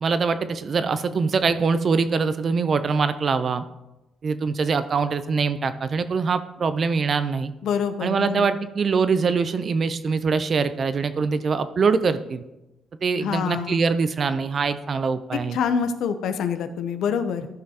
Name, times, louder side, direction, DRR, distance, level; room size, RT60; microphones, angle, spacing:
voice 1, 0.0-3.6 4.2-7.5 8.0-12.4 13.0-15.6, right 5 dB, 45° right, 12 dB, 0.6 m, -23 dB
voice 2, 7.6-8.5 13.2-13.8 15.5-17.5, left 7 dB, 80° left, 9 dB, 0.6 m, -26 dB
12.5 x 5.5 x 2.9 m, 0.97 s
cardioid pair, 90°, 0 cm